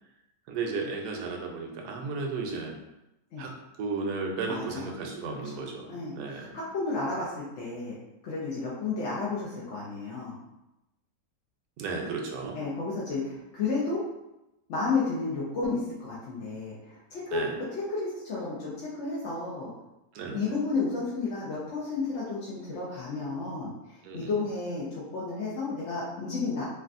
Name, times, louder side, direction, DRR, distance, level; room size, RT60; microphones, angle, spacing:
voice 1, 0.5-2.7 3.4-6.6 11.8-12.6 13.1-13.3 17.3-17.6 20.1-20.5 24.0-24.3, right 4 dB, 75° right, 2 dB, 1.1 m, -34 dB
voice 2, 4.5-4.8 5.3-5.6 5.9-6.1 6.5-8.0 8.2-10.4 12.5-14.0 14.7-17.4 17.7-19.7 20.3-26.6, left 4 dB, 65° left, -7 dB, 0.7 m, -32 dB
3.3 x 2.3 x 2.5 m, 0.92 s
omnidirectional pair, 1.8 m